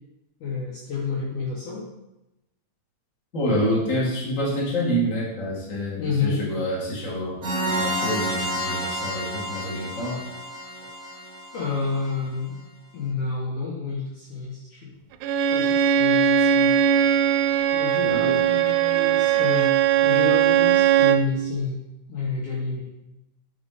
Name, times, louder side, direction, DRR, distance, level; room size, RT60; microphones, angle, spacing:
voice 1, 0.4-1.9 6.0-6.4 11.5-12.6 12.9-14.9 15.5-16.8 17.7-19.7 20.0-21.8 22.1-22.9, left 4 dB, 60° left, -6 dB, 2.4 m, -29 dB
voice 2, 3.3-10.2 18.0-18.4, equal, 25° left, -6 dB, 1.9 m, -27 dB
sound 1, 7.4-12.1, equal, 35° right, 1.1 m, -30 dB
Bowed string instrument, 15.2-21.3, right 9 dB, 85° right, 2.6 m, -19 dB
7.0 x 6.4 x 4.2 m, 0.92 s
omnidirectional pair, 4.8 m